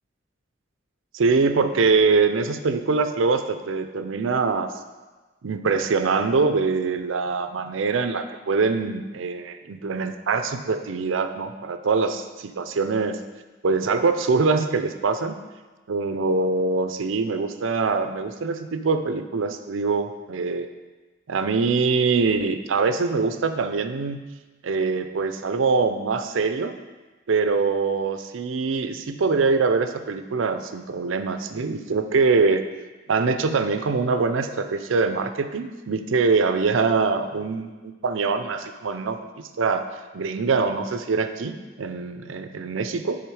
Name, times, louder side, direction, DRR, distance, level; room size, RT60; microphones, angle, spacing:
voice 1, 1.1-4.7 5.4-13.2 13.6-15.4 15.9-20.7 21.3-24.2 24.6-26.7 27.3-32.7 33.1-39.9 40.1-43.2, right 4 dB, 75° right, 9 dB, 0.5 m, -23 dB
10.5 x 3.7 x 4.7 m, 1.2 s
head